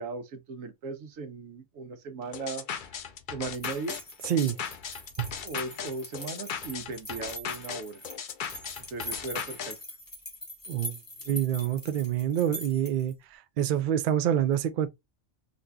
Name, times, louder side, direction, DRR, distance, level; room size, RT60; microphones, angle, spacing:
voice 1, 0.0-2.6 3.3-4.0 5.4-8.0 8.9-9.8, right 3 dB, 85° right, 1.2 m, -37 dB
sound 1, 2.3-9.7, left 7 dB, 60° left, 0.5 m, -37 dB
sound 2, 3.5-13.1, left 1 dB, 15° left, 1.1 m, -43 dB
voice 2, 4.3-4.6 5.2-5.3 10.7-11.0 11.3-14.9, right 10 dB, 70° right, 0.5 m, -27 dB
4.1 x 2.6 x 2.2 m
omnidirectional pair, 1.3 m